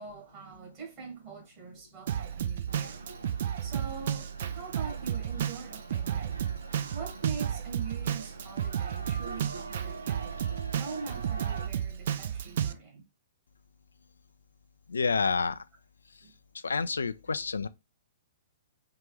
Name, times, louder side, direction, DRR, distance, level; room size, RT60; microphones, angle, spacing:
voice 1, 0.0-3.0 3.6-4.3 4.5-6.4 6.9-13.1 16.2-16.3, right 5 dB, 35° right, 1.8 m, -43 dB
Drum kit, 2.1-12.7, right 9 dB, 55° right, 0.4 m, -32 dB
sound 1, 2.7-11.7, right 3 dB, 85° right, 0.7 m, -45 dB
voice 2, 14.9-15.7 16.1-16.2 16.5-17.7, left 4 dB, 75° left, 0.3 m, -29 dB
4.6 x 2.5 x 3.2 m
figure-of-eight pair, 115°, 0 cm